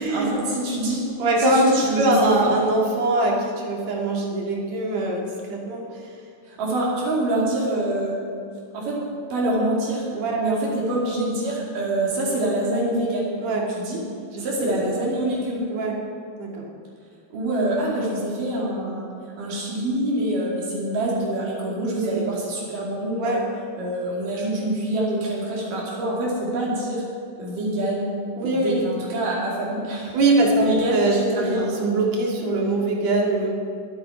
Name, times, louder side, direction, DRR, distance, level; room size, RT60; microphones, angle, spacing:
voice 1, 0.0-1.0 1.4-2.3 6.5-8.2 8.7-9.0 9.3-10.1 10.4-13.3 13.7-14.0 14.4-15.6 17.3-19.1 19.4-23.4 23.8-27.0 27.4-28.1 28.5-30.2 30.6-31.7, right 1 dB, 80° right, -5 dB, 4.0 m, -25 dB
voice 2, 1.2-5.8 10.1-10.6 13.4-13.6 14.3-14.8 15.7-15.9 16.4-16.6 21.9-22.2 23.2-23.4 28.4-28.9 30.1-31.1 31.4-33.5, right 2 dB, 60° right, -1 dB, 3.1 m, -22 dB
23.0 x 9.2 x 4.7 m, 2.4 s
omnidirectional pair, 3.8 m